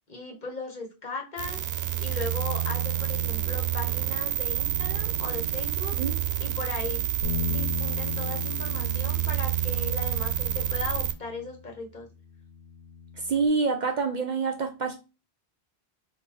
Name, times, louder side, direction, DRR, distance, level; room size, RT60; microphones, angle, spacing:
voice 1, 0.1-6.0 6.4-7.1 7.4-12.1, left 3 dB, 50° left, 1.2 m, -37 dB
sound 1, 1.4-11.1, right 11 dB, 85° right, 0.8 m, -28 dB
Bass guitar, 7.2-13.5, left 6 dB, 85° left, 1.3 m, -37 dB
voice 2, 13.3-15.0, right 4 dB, 55° right, 0.6 m, -26 dB
3.7 x 2.6 x 4.5 m
omnidirectional pair, 1.0 m